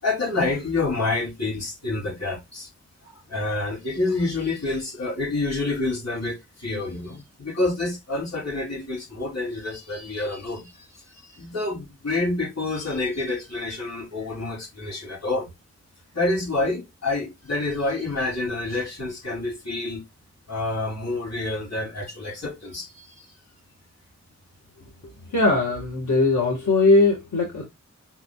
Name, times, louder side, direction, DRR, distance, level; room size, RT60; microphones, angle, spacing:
voice 1, 0.0-2.7 3.0-15.5 16.1-20.0 20.5-23.3, left 2 dB, 60° left, 3.1 m, -28 dB
voice 2, 25.3-27.6, left 2 dB, 80° left, 1.7 m, -20 dB
5.9 x 3.8 x 2.3 m
wide cardioid pair, 105°, 29 cm